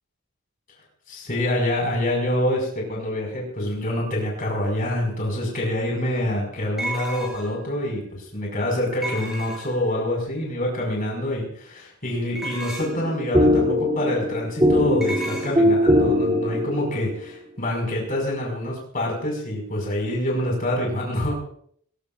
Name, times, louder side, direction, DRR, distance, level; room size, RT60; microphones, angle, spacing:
voice 1, 1.1-21.3, left 1 dB, 40° left, -1 dB, 5.6 m, -26 dB
sound 1, 5.2-5.3 6.8-7.6 9.0-9.9 12.3-13.1 15.0-15.5, right 1 dB, ahead, 8.0 m, -32 dB
sound 2, 12.8-17.1, left 1 dB, 20° right, 2.9 m, -21 dB
21.0 x 19.5 x 2.5 m, 0.62 s
head